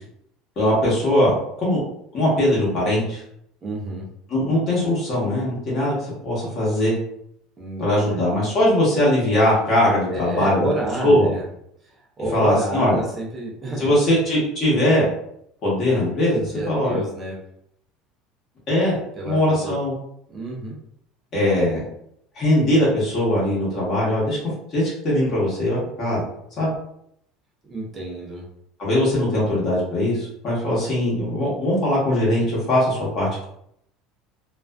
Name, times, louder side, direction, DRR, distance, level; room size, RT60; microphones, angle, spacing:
voice 1, 0.6-1.3 1.6-1.8 2.1-3.2 4.3-6.9 7.8-10.7 11.0-11.3 12.3-13.0 13.8-15.0 15.6-17.0 18.7-19.0 19.2-19.9 21.3-21.8 22.3-24.4 24.7-26.2 26.6-26.7 28.8-33.4, left 1 dB, 40° left, -7 dB, 1.0 m, -20 dB
voice 2, 3.6-4.1 7.6-8.3 10.1-11.5 12.2-13.9 16.3-17.4 19.2-19.8 20.3-20.8 27.7-28.4, right 2 dB, 20° right, -2 dB, 0.6 m, -29 dB
2.4 x 2.3 x 2.2 m, 0.73 s
cardioid pair, 155°, 0 cm